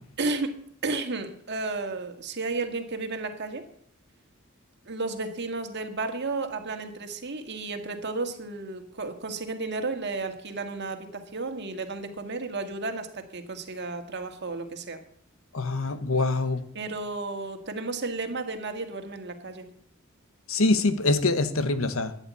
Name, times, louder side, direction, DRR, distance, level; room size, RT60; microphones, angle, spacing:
voice 1, 0.2-0.6 0.8-3.7 4.9-15.0 16.7-19.7, right 3 dB, 55° right, 6 dB, 1.9 m, -33 dB
voice 2, 15.5-16.6 20.5-22.1, left 2 dB, 75° left, 11 dB, 1.3 m, -24 dB
14.0 x 10.0 x 8.4 m, 0.65 s
head